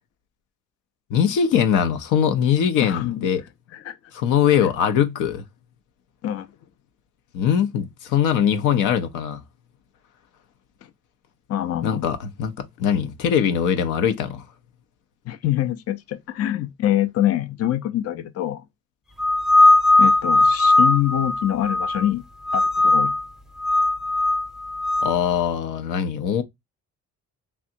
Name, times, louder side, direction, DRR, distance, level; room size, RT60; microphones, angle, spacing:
voice 1, 1.1-3.4 4.1-5.4 7.3-9.4 11.8-14.4 25.0-26.4, left 8 dB, 90° left, 0.7 m, -21 dB
voice 2, 2.8-3.3 3.7-4.0 4.6-4.7 6.2-6.5 11.5-12.1 15.3-18.6 20.0-22.2 22.5-23.1, left 12 dB, 55° left, 0.5 m, -25 dB
sound 1, 19.2-22.1 22.5-23.2 23.6-25.1, left 2 dB, ahead, 0.7 m, -18 dB
3.4 x 2.5 x 2.6 m
cardioid pair, 90°, 30 cm